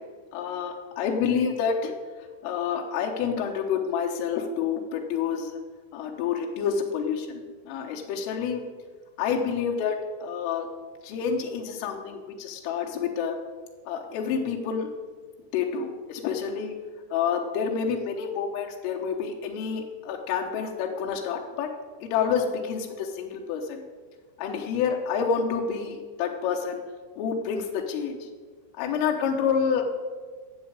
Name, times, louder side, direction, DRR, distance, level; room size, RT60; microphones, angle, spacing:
voice 1, 0.3-1.9 2.4-5.6 5.9-8.6 9.2-10.7 11.0-13.4 13.9-14.9 15.5-16.8 17.1-21.7 22.0-23.8 24.4-26.8 27.2-28.2 28.8-29.8, left 6 dB, 90° left, 2 dB, 3.5 m, -28 dB
11.0 x 7.3 x 8.6 m, 1.5 s
omnidirectional pair, 5.7 m